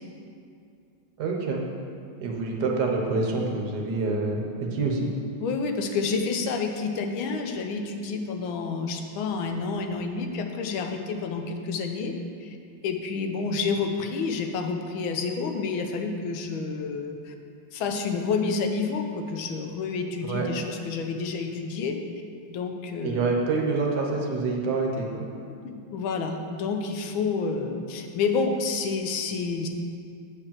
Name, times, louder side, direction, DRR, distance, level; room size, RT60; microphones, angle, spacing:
voice 1, 1.2-1.6 2.2-4.4 4.7-5.1 20.3-20.5 23.0-25.3, right 3 dB, 60° right, 0 dB, 1.4 m, -26 dB
voice 2, 5.4-12.2 12.4-12.6 12.8-17.3 17.7-22.0 22.5-23.4 25.6-29.7, left 4 dB, 85° left, 4 dB, 1.6 m, -29 dB
7.5 x 4.9 x 7.2 m, 2.3 s
omnidirectional pair, 2.2 m